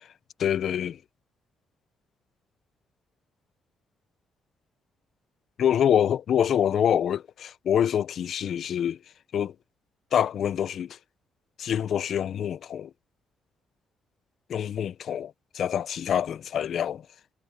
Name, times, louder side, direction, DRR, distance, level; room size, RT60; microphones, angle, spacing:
voice 1, 0.4-1.0 5.6-9.0 9.3-9.5 10.1-11.0 11.6-12.9 14.5-17.0, left 9 dB, 65° left, 0.7 m, -26 dB
cardioid pair, 90°, 0 cm